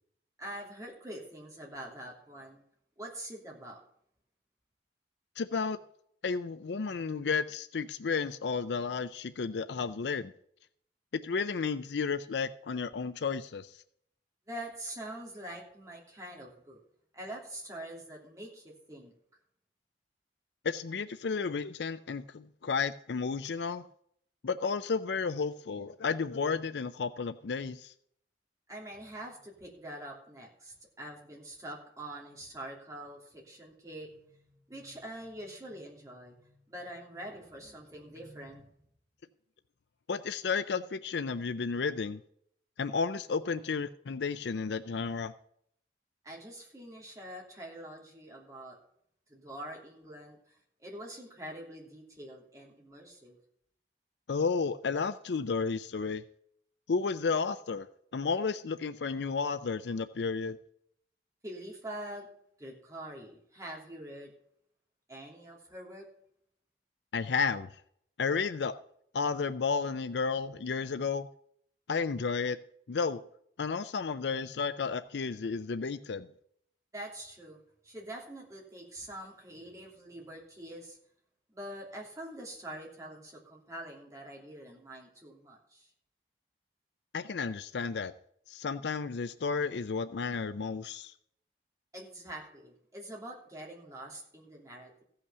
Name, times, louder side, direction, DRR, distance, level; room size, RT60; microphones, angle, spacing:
voice 1, 0.4-2.6 3.0-3.8 14.5-16.8 17.1-19.1 28.7-34.4 34.7-38.7 46.2-48.8 49.3-53.4 61.4-62.3 62.6-64.3 65.1-66.1 76.9-77.6 77.8-81.0 81.5-85.9 91.9-95.0, right 1 dB, 20° right, -2 dB, 2.9 m, -45 dB
voice 2, 5.4-5.8 6.2-10.3 11.1-13.8 20.6-23.8 24.4-27.9 40.1-42.2 42.8-45.3 54.3-56.2 56.9-57.9 58.1-60.6 67.1-67.7 68.2-68.8 69.1-71.3 71.9-72.6 72.9-73.2 73.6-76.3 87.1-88.1 88.5-91.1, left 5 dB, 80° left, 12 dB, 0.5 m, -32 dB
15.0 x 5.8 x 6.8 m, 0.68 s
head